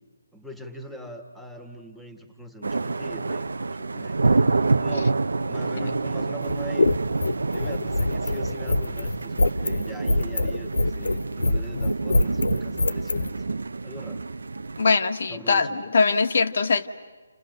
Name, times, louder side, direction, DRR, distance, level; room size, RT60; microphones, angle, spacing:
voice 1, 0.3-3.7 3.9-4.5 4.8-5.2 5.5-6.9 7.5-13.4 13.8-14.2 15.3-15.8, right 1 dB, ahead, 5 dB, 1.7 m, -42 dB
sound 1, 2.6-15.0, right 3 dB, 80° right, 0.8 m, -27 dB
sound 2, 6.4-13.3, left 2 dB, 80° left, 0.9 m, -24 dB
voice 2, 14.8-16.9, left 4 dB, 55° left, 9 dB, 1.6 m, -22 dB
30.0 x 29.5 x 6.7 m, 1.4 s
hypercardioid pair, 165°, 0 cm